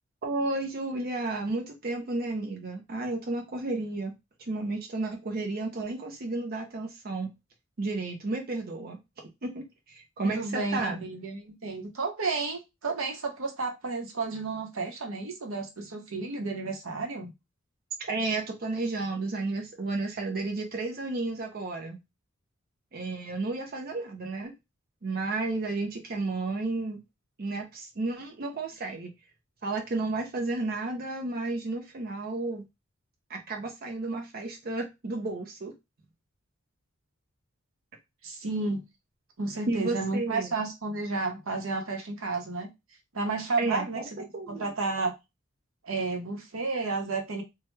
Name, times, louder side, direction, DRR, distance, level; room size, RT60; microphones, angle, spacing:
voice 1, 0.2-4.1 4.5-7.3 7.8-9.0 9.4-11.0 18.1-22.0 22.9-24.5 25.0-27.0 27.4-29.1 29.6-32.6 33.3-35.7 39.7-40.5 43.6-44.7, right 2 dB, 50° right, 2 dB, 0.6 m, -32 dB
voice 2, 10.2-17.3 38.2-38.8 39.4-42.7 43.1-44.0 44.5-45.1 45.8-47.4, right 3 dB, 85° right, 4 dB, 0.9 m, -32 dB
3.1 x 2.2 x 3.1 m, 0.22 s
head